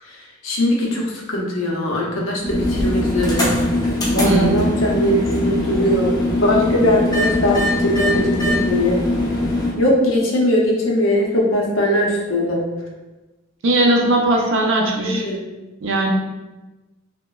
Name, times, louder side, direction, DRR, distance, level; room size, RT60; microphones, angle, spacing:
voice 1, 0.4-3.5 4.1-6.1 6.4-8.3 8.6-9.0 9.7-12.6 15.0-15.4, left 1 dB, 70° left, -3 dB, 0.6 m, -20 dB
sound 1, 2.4-9.7, left 1 dB, 20° left, 0.4 m, -21 dB
voice 2, 4.2-4.6 13.6-15.2 15.8-16.1, right 1 dB, 60° right, 0 dB, 0.4 m, -18 dB
2.9 x 2.1 x 2.3 m, 1.1 s
head